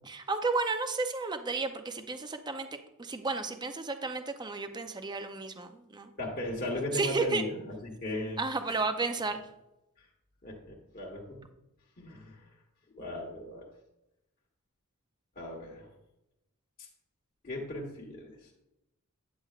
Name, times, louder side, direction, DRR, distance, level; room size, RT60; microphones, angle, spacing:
voice 1, 0.0-2.7 3.0-6.1 6.9-7.4 8.4-9.4, right 3 dB, 20° right, 7 dB, 0.5 m, -32 dB
voice 2, 6.2-8.4 8.7-8.8 10.0-10.1 10.4-11.4 12.0-12.5 12.9-13.6 15.4-15.9 16.8-16.9 17.4-18.5, left 1 dB, 40° left, -3 dB, 1.3 m, -37 dB
9.7 x 8.2 x 2.4 m, 0.90 s
head